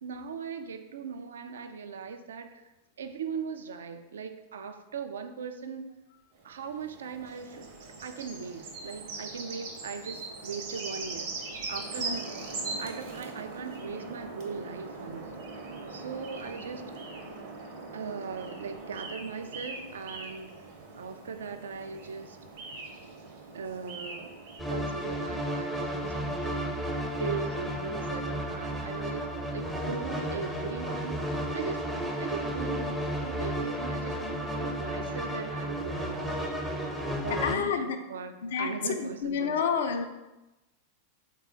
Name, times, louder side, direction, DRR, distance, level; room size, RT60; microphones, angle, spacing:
voice 1, 0.0-2.6 3.0-5.9 6.4-7.7 8.0-11.3 11.7-12.3 12.8-15.4 15.9-16.8 17.9-20.5 20.9-22.4 23.5-24.3 24.7-26.7 27.2-36.3 37.2-39.7, right 5 dB, 65° right, 8 dB, 0.3 m, -39 dB
sound 1, 6.4-24.6, right 3 dB, 50° right, 0.7 m, -41 dB
sound 2, 24.6-37.5, equal, ahead, 0.5 m, -33 dB
voice 2, 37.3-38.0 38.4-40.0, left 6 dB, 60° left, 7 dB, 0.4 m, -29 dB
3.5 x 2.2 x 4.2 m, 1.0 s
figure-of-eight pair, 90°, 0 cm